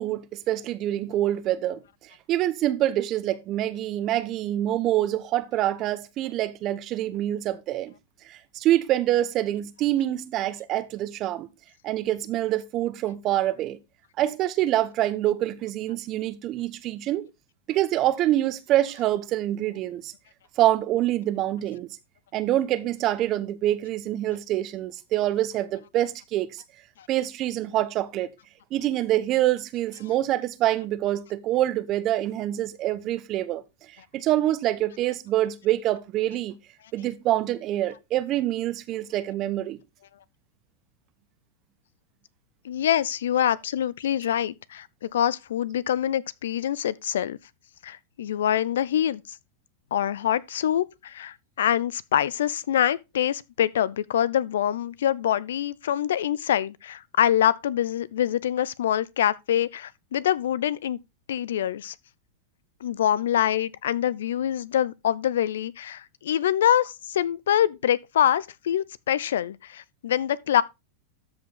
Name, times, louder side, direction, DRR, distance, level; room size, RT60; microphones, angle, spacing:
voice 1, 0.0-1.8 2.3-7.9 8.2-11.5 11.8-13.8 14.2-17.3 17.7-20.1 20.6-21.9 22.3-26.6 27.1-28.3 28.7-33.6 34.1-36.5 36.9-39.8, right 13 dB, 40° right, 1.0 m, -26 dB
voice 2, 42.6-47.4 47.8-49.2 49.9-61.0 61.3-61.9 62.8-70.6, left 10 dB, 85° left, 0.6 m, -25 dB
13.0 x 5.1 x 3.8 m
hypercardioid pair, 120°, 0 cm